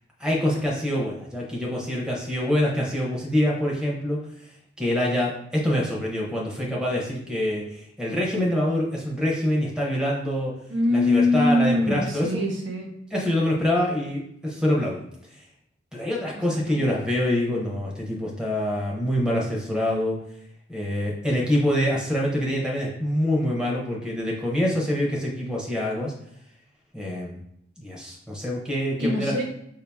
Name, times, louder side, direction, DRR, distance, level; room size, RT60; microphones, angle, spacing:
voice 1, 0.2-4.2 4.8-10.5 10.9-12.3 13.1-15.1 15.9-20.2 20.7-26.1 26.9-27.4 27.8-29.3, left 1 dB, 5° right, -3 dB, 0.9 m, -25 dB
voice 2, 10.7-12.9 16.5-16.8 29.0-29.4, left 2 dB, 70° right, -1 dB, 1.3 m, -23 dB
5.3 x 2.8 x 3.5 m, 0.74 s
head